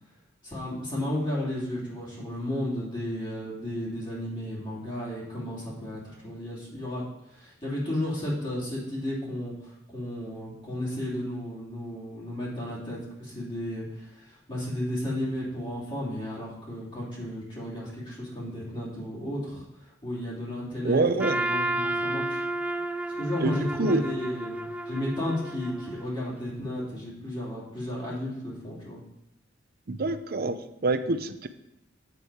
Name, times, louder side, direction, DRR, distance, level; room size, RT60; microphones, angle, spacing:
voice 1, 0.4-7.0 7.3-19.6 20.0-21.0 21.3-22.4 23.2-29.0, left 1 dB, 25° left, -7 dB, 3.0 m, -33 dB
voice 2, 20.8-21.4 23.4-24.0 29.9-31.5, right 2 dB, 50° right, 11 dB, 0.6 m, -26 dB
Trumpet, 21.2-26.3, right 1 dB, 5° right, 0.4 m, -32 dB
8.3 x 7.5 x 4.9 m, 0.83 s
head